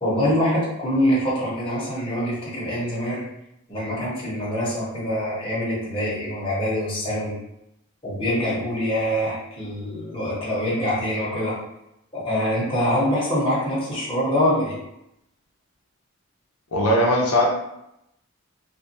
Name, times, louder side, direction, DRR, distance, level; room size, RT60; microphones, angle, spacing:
voice 1, 0.0-3.2 3.7-7.3 8.0-11.6 12.1-14.8, equal, 25° left, -7 dB, 0.8 m, -24 dB
voice 2, 16.7-17.5, equal, 80° left, -2 dB, 0.6 m, -19 dB
2.5 x 2.3 x 2.6 m, 0.82 s
head